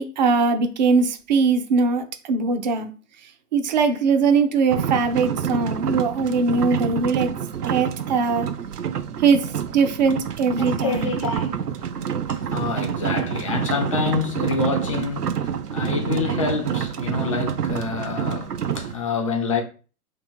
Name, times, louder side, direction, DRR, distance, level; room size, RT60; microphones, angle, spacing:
voice 1, 0.0-2.9 3.5-7.3 7.7-8.5 9.2-11.1, right 4 dB, 30° right, 0.5 m, -21 dB
sound 1, 4.7-18.9, right 8 dB, 85° right, 0.6 m, -27 dB
voice 2, 10.6-19.6, left 5 dB, 25° left, 0.4 m, -27 dB
3.0 x 2.9 x 4.4 m
figure-of-eight pair, 115°, 45 cm